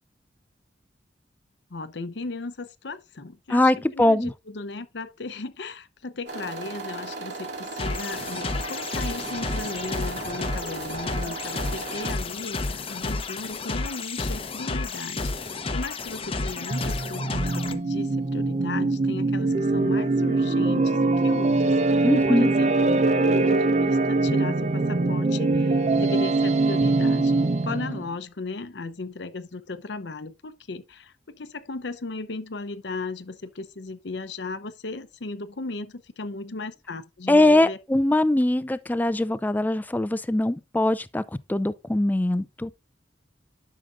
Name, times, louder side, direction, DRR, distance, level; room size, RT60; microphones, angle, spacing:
voice 1, 1.7-37.8, left 3 dB, 75° left, 0.8 m, -36 dB
voice 2, 3.5-4.3 22.0-22.5 37.3-41.2 41.5-42.8, left 1 dB, 10° left, 0.4 m, -22 dB
sound 1, 6.3-12.1, right 3 dB, 90° right, 2.1 m, -36 dB
sound 2, 7.8-17.7, left 3 dB, 35° left, 0.7 m, -31 dB
sound 3, 16.7-28.1, right 3 dB, 40° right, 0.5 m, -23 dB
11.0 x 6.6 x 2.5 m
head